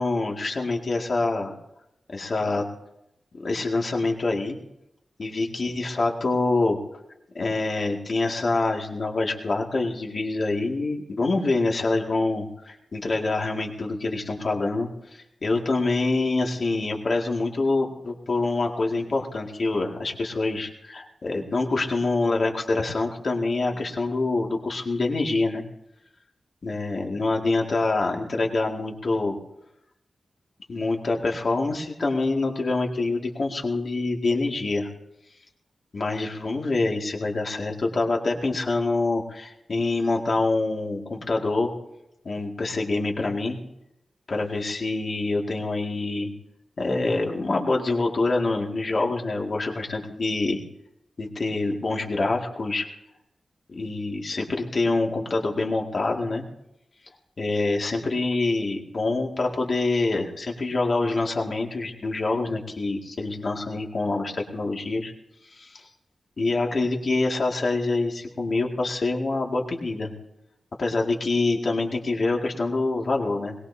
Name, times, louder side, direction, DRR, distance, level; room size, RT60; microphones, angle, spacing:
voice 1, 0.0-1.5 2.1-2.6 3.4-4.6 5.2-6.8 7.3-25.6 26.6-29.4 30.7-34.9 35.9-41.7 42.2-43.6 44.3-46.3 46.8-50.6 51.2-52.8 53.7-56.4 57.4-65.1 65.5-65.8 66.4-70.1 70.8-73.6, left 3 dB, 50° left, 0 dB, 2.2 m, -26 dB
21.5 x 19.0 x 2.8 m, 0.85 s
wide cardioid pair, 115°, 0 cm